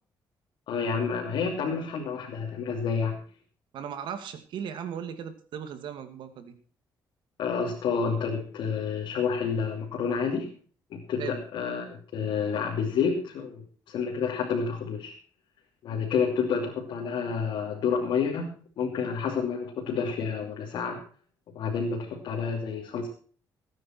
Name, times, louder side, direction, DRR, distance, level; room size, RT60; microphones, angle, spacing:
voice 1, 0.7-3.2 7.4-10.5 10.9-15.1 15.8-21.0 21.5-23.1, left 6 dB, 75° left, -2 dB, 2.9 m, -29 dB
voice 2, 3.7-6.5 11.2-11.4, right 8 dB, 80° right, 9 dB, 2.3 m, -37 dB
19.0 x 9.7 x 4.5 m, 0.41 s
cardioid pair, 100°, 8 cm